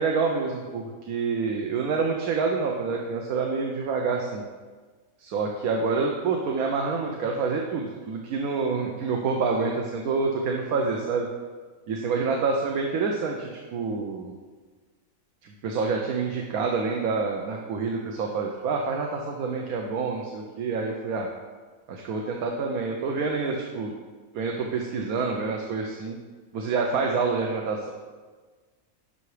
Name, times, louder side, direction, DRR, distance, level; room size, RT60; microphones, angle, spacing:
voice 1, 0.0-4.4 5.2-11.3 11.9-14.3 15.6-21.3 21.9-23.9 24.3-26.2 26.5-27.9, right 4 dB, 90° right, 1 dB, 1.2 m, -27 dB
10.5 x 5.7 x 3.3 m, 1.4 s
omnidirectional pair, 1.5 m